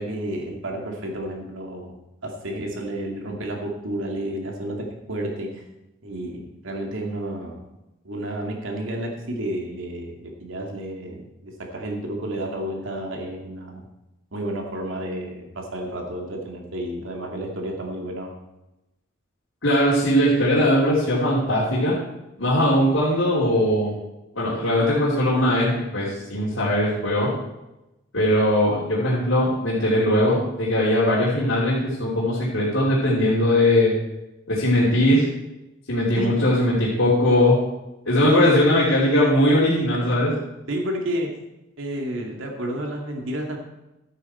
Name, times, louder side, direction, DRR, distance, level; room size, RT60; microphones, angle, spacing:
voice 1, 0.0-2.0 2.2-5.6 6.0-7.6 8.0-13.8 14.3-18.3 36.2-36.4 38.3-38.5 40.7-41.3 41.8-43.6, right 1 dB, 80° right, 1 dB, 2.3 m, -31 dB
voice 2, 19.6-21.9 22.4-23.9 24.3-27.3 28.1-33.9 34.5-35.2 35.9-37.6 38.0-40.3, left 1 dB, 75° left, -8 dB, 3.2 m, -20 dB
13.0 x 9.4 x 4.4 m, 0.95 s
head